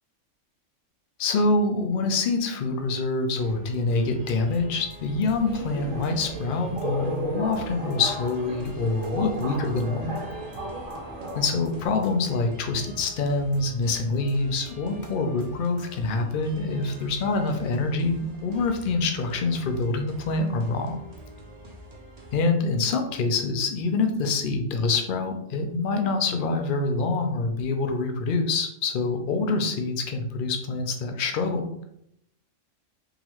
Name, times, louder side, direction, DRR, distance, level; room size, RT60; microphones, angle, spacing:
voice 1, 1.2-10.2 11.3-21.0 22.3-31.8, left 3 dB, 55° left, 5 dB, 0.6 m, -26 dB
sound 1, 3.3-22.5, equal, 35° right, 0.8 m, -46 dB
sound 2, 4.5-5.0 5.3-5.4 5.7-5.8 6.0-6.1 6.4-6.5 6.8-7.2 7.5-8.0 8.3-8.4 8.7-8.8 9.0-9.1 9.4-9.5 9.8-10.2 10.5-11.0 11.3-11.4 11.7-11.8 12.0-12.1 12.4-12.5 12.8-13.2 13.5-14.0 14.3-14.4 14.7-14.8 15.0-15.1 15.4-15.5 15.8-16.2, right 3 dB, 70° right, 1.2 m, -48 dB
Subway metro underground, 5.1-11.9, right 1 dB, 90° right, 1.3 m, -35 dB
3.9 x 3.0 x 3.0 m, 0.76 s
omnidirectional pair, 1.3 m